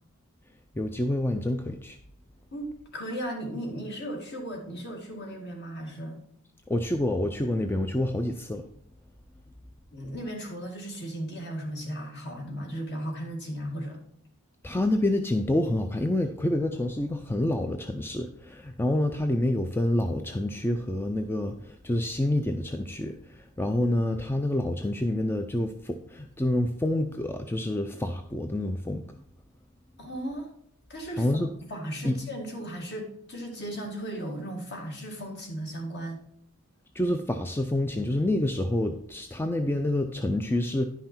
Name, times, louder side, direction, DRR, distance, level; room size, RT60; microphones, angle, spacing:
voice 1, 0.8-2.0 6.7-8.7 14.6-29.1 31.2-31.5 32.0-32.2 36.9-40.8, left 1 dB, 10° left, 6 dB, 0.4 m, -27 dB
voice 2, 2.5-6.2 9.9-14.0 30.0-30.5 30.9-31.3 31.7-36.2, right 1 dB, 50° left, 2 dB, 2.0 m, -36 dB
10.5 x 5.8 x 4.4 m, 0.69 s
head